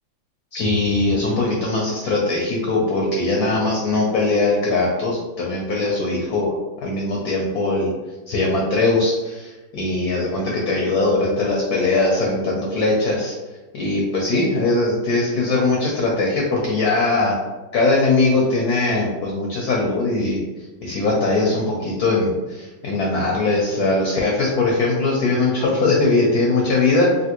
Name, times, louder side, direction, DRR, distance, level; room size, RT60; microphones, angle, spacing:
voice 1, 0.5-7.9 8.3-13.4 13.7-17.4 17.7-20.4 20.8-27.1, left 2 dB, 70° left, -2 dB, 0.9 m, -20 dB
3.3 x 2.6 x 2.9 m, 1.2 s
omnidirectional pair, 2.2 m